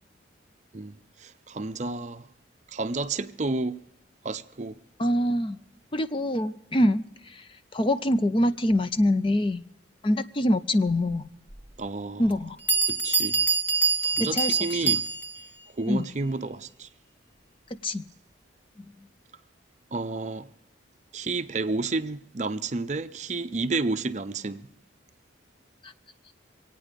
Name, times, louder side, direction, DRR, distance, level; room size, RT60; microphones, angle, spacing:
voice 1, 0.7-2.3 2.7-3.8 4.2-4.8 11.8-12.4 12.9-13.5 14.0-15.0 15.7-16.9 19.9-20.5 21.1-24.6, right 3 dB, 35° right, 0.6 m, -31 dB
voice 2, 5.0-5.6 5.9-7.4 7.7-9.6 10.0-11.2 12.2-12.6 14.3-14.6 15.9-16.1 17.8-18.0 25.8-25.9, left 1 dB, 25° left, 0.5 m, -24 dB
Bell, 11.5-11.6 12.3-12.4 12.7-15.5, right 5 dB, 10° left, 0.9 m, -25 dB
24.5 x 9.1 x 5.1 m
head